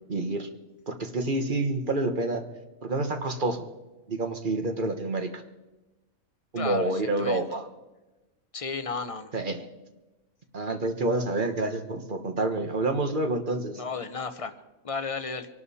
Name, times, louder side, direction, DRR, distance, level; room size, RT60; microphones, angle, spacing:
voice 1, 0.1-0.5 0.9-2.4 2.8-3.6 4.1-5.3 6.5-7.7 9.3-9.6 10.5-13.8, right 2 dB, 35° right, 6 dB, 1.3 m, -28 dB
voice 2, 6.5-7.4 8.5-9.3 13.8-14.5 14.8-15.5, left 4 dB, 30° left, 8 dB, 0.8 m, -33 dB
23.5 x 12.0 x 4.2 m, 1.1 s
omnidirectional pair, 1.5 m